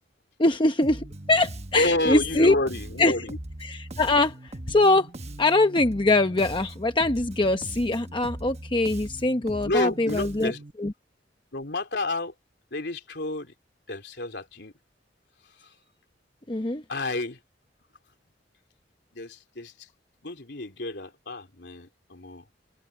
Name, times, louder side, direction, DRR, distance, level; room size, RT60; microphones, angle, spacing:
voice 1, 0.4-2.5 3.0-3.1 3.6-5.1 5.4-10.5 10.8-10.9 16.5-16.8, left 2 dB, 25° left, 0.9 m, -23 dB
Bass guitar, 0.8-10.7, right 1 dB, 35° right, 1.2 m, -40 dB
voice 2, 1.7-3.4 9.6-10.6 11.5-12.3 12.7-13.5 13.9-14.7 15.6-15.7 16.9-17.4 19.1-19.9 20.2-22.4, left 2 dB, 65° left, 3.5 m, -29 dB
head